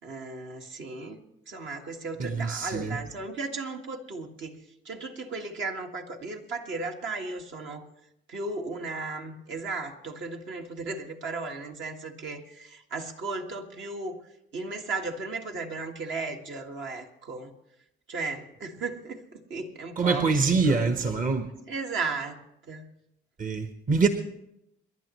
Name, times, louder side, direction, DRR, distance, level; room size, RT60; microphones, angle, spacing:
voice 1, 0.0-1.2 1.5-7.9 8.3-14.2 14.5-17.5 18.1-20.3 20.7-21.2 21.7-22.9, right 3 dB, 70° right, 2 dB, 1.8 m, -35 dB
voice 2, 2.2-3.0 20.0-21.5 23.4-24.1, right 4 dB, 40° right, 7 dB, 1.1 m, -25 dB
28.5 x 11.0 x 3.1 m, 0.83 s
cardioid pair, 90°, 20 cm